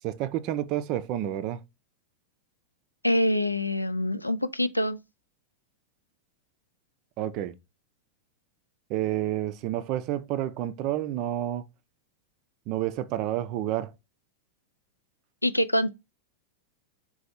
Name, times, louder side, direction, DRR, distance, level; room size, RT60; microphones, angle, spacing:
voice 1, 0.0-1.6 7.2-7.6 8.9-11.7 12.7-13.9, right 12 dB, 40° right, 0.4 m, -29 dB
voice 2, 3.0-5.0 15.4-15.9, left 1 dB, 85° left, 0.3 m, -25 dB
4.2 x 2.3 x 4.0 m
figure-of-eight pair, 90°, 0 cm